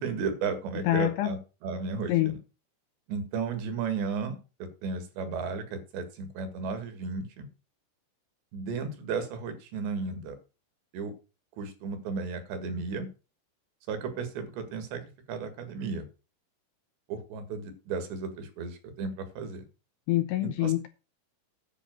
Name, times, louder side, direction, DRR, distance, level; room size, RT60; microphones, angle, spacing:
voice 1, 0.0-1.4 1.6-2.3 3.1-7.5 8.5-10.4 10.9-11.1 11.6-13.1 13.9-16.0 17.1-19.6 20.6-20.7, right 5 dB, 70° right, 3.8 m, -34 dB
voice 2, 0.8-1.3 2.1-2.4 20.1-20.9, left 17 dB, 80° left, 2.6 m, -26 dB
10.0 x 5.8 x 7.7 m
omnidirectional pair, 5.5 m